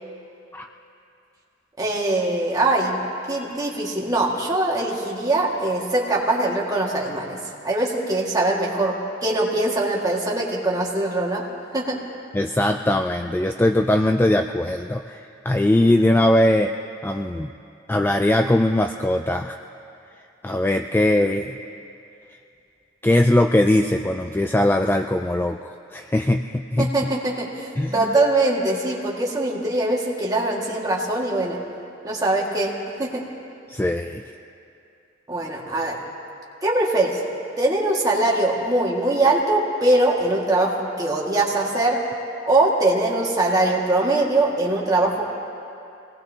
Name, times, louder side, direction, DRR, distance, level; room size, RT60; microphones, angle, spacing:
voice 1, 1.8-3.0 3.3-7.4 7.6-11.4 11.7-12.0 26.8-31.6 32.0-33.3 35.3-36.0 36.6-37.2 37.6-42.0 42.5-45.3, right 2 dB, 20° right, -3 dB, 2.0 m, -22 dB
voice 2, 12.3-16.7 17.0-17.5 17.9-19.6 20.4-21.6 23.0-25.6 25.9-27.1 27.8-28.1 33.7-34.2, left 1 dB, 10° left, 5 dB, 0.3 m, -20 dB
25.0 x 18.5 x 2.9 m, 2.6 s
head